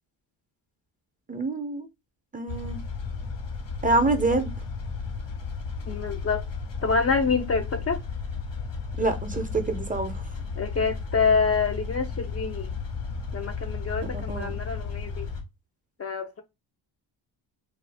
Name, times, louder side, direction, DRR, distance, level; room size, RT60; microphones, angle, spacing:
voice 1, 1.3-1.9 2.3-2.8 3.8-4.5 9.0-10.2 14.1-14.5, right 2 dB, 20° right, 0.5 m, -26 dB
sound 1, 2.5-15.4, left 5 dB, 65° left, 1.1 m, -34 dB
voice 2, 5.9-6.4 6.8-8.0 10.6-12.7 13.3-15.3 16.0-16.4, left 5 dB, 35° left, 0.4 m, -26 dB
2.4 x 2.3 x 3.3 m
cardioid pair, 85°, 46 cm